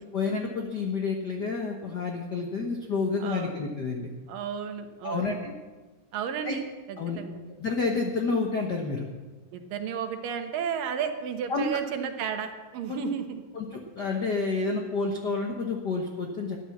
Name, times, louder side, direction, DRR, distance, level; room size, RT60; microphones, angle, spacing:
voice 1, 0.1-4.1 5.0-5.5 6.4-6.5 7.0-7.2 7.6-9.0 11.5-11.7 13.5-16.6, left 4 dB, 80° left, 2 dB, 0.9 m, -29 dB
voice 2, 3.2-3.6 4.3-5.4 6.1-7.4 9.5-13.4, right 7 dB, 80° right, 6 dB, 2.8 m, -33 dB
13.0 x 11.0 x 7.3 m, 1.3 s
omnidirectional pair, 3.9 m